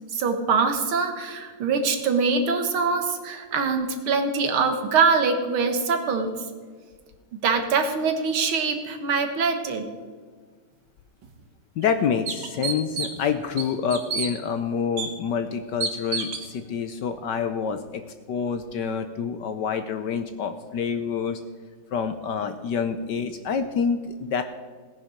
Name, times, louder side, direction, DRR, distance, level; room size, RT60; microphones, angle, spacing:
voice 1, 0.1-6.3 7.4-9.9, right 5 dB, 75° right, 6 dB, 2.2 m, -23 dB
sound 1, 11.2-11.3 11.8-11.9 12.3-13.3 13.6-14.3 15.0-15.1 15.8-16.5, right 5 dB, 60° right, 1.9 m, -29 dB
voice 2, 11.8-21.4 21.9-24.4, left 6 dB, 70° left, 9 dB, 1.1 m, -27 dB
17.5 x 9.9 x 5.1 m, 1.5 s
omnidirectional pair, 2.4 m